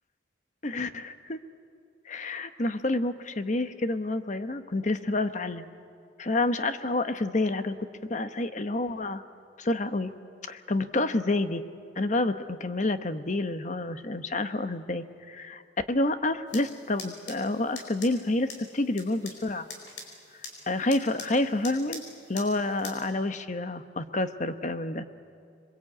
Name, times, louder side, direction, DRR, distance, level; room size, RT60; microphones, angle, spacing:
voice 1, 0.6-1.4 2.1-5.7 6.2-7.7 8.1-9.2 9.6-10.1 10.5-11.6 12.0-15.6 15.9-19.7 20.7-22.0 22.3-25.0, left 2 dB, 40° left, 10 dB, 1.0 m, -28 dB
sound 1, 16.5-23.0, left 3 dB, 65° left, 4.7 m, -45 dB
26.5 x 22.5 x 8.6 m, 2.4 s
head